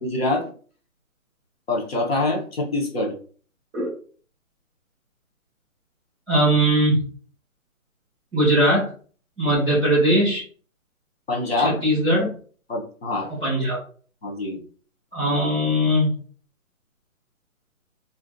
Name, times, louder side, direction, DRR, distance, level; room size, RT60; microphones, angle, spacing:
voice 1, 0.0-0.5 1.7-3.1 11.3-11.8 12.7-13.3 14.2-14.6, left 2 dB, 45° left, -1 dB, 0.8 m, -25 dB
voice 2, 6.3-7.0 8.3-8.9 9.4-10.4 11.6-12.3 13.4-13.8 15.1-16.1, right 1 dB, 5° right, -9 dB, 0.7 m, -20 dB
2.7 x 2.5 x 2.6 m, 0.43 s
hypercardioid pair, 165°, 42 cm